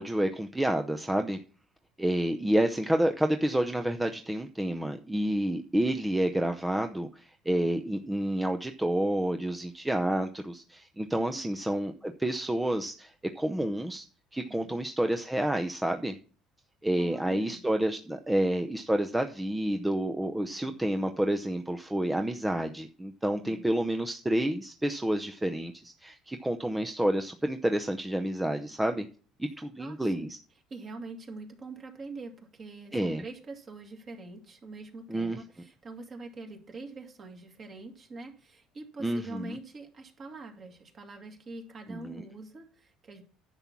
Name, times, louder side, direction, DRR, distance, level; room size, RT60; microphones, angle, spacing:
voice 1, 0.0-1.4 2.0-14.0 14.3-16.1 16.8-29.1 29.4-30.4 32.9-33.2 35.1-35.4 39.0-39.5 41.9-42.2, right 1 dB, 5° right, 0.6 m, -29 dB
voice 2, 11.1-11.6 14.5-14.8 17.0-17.6 20.4-20.8 23.2-23.7 29.8-30.3 30.7-43.2, right 3 dB, 35° right, 2.3 m, -45 dB
10.5 x 7.2 x 6.0 m
cardioid pair, 135°, 0 cm